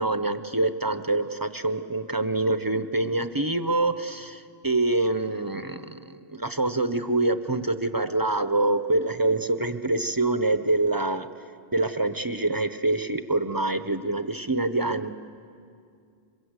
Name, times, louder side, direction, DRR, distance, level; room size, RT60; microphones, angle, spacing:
voice 1, 0.0-11.3 11.7-15.1, right 2 dB, 25° right, 10 dB, 0.6 m, -25 dB
25.5 x 22.5 x 8.1 m, 2.4 s
omnidirectional pair, 1.0 m